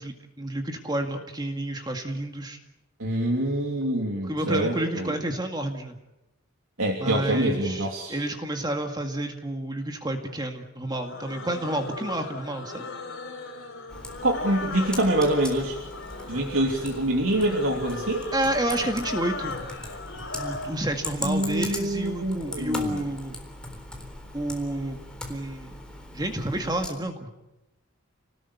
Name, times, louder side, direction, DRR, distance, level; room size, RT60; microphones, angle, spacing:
voice 1, 0.0-2.6 4.2-6.0 7.0-12.8 18.3-19.6 20.3-23.4 24.3-25.0 25.3-25.8 26.1-27.3, right 1 dB, 20° right, 4 dB, 2.1 m, -30 dB
voice 2, 3.0-5.1 6.8-8.1 14.2-15.8 16.3-18.3 21.2-23.0, right 1 dB, 75° right, 1 dB, 3.0 m, -25 dB
sound 1, 10.9-20.8, left 3 dB, 60° left, 5.2 m, -38 dB
Computer keyboard, 13.9-26.9, left 1 dB, 5° left, 3.9 m, -40 dB
29.5 x 20.0 x 8.4 m, 0.95 s
head